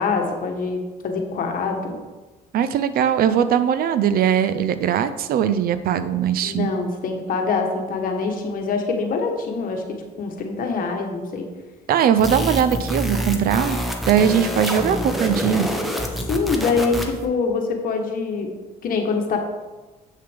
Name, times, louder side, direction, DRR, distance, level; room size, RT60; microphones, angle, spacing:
voice 1, 0.0-2.0 6.4-9.8 10.2-11.4 16.3-18.5 18.8-19.4, left 4 dB, 55° left, 3 dB, 1.3 m, -24 dB
voice 2, 2.5-6.7 11.9-13.8 14.1-15.7, right 8 dB, 60° right, 12 dB, 0.5 m, -20 dB
sound 1, 12.2-17.3, equal, ahead, 1.0 m, -26 dB
7.6 x 6.5 x 3.5 m, 1.2 s
cardioid pair, 110°, 17 cm